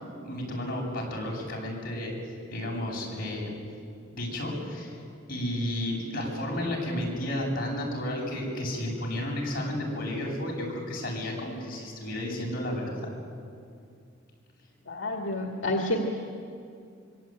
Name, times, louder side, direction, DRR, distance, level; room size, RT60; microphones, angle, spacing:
voice 1, 0.2-2.1 2.5-3.5 4.1-5.0 5.3-13.0, left 1 dB, 50° left, -2 dB, 8.0 m, -32 dB
voice 2, 14.9-16.0, left 1 dB, 80° left, 1 dB, 2.3 m, -29 dB
25.0 x 24.0 x 9.1 m, 2.4 s
head